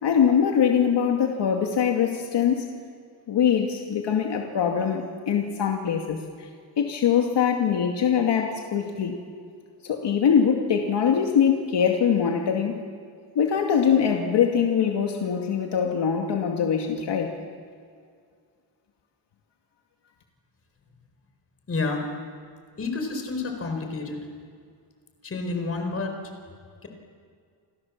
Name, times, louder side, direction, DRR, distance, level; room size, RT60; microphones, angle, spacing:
voice 1, 0.0-2.7 3.3-6.5 6.8-9.2 9.8-12.8 13.4-17.3, left 7 dB, 65° left, 2 dB, 2.4 m, -23 dB
voice 2, 21.7-22.0 22.8-24.2 25.2-26.2 26.8-26.9, left 3 dB, 30° left, 4 dB, 4.6 m, -29 dB
29.5 x 25.5 x 7.4 m, 2.1 s
wide cardioid pair, 175°, 45 cm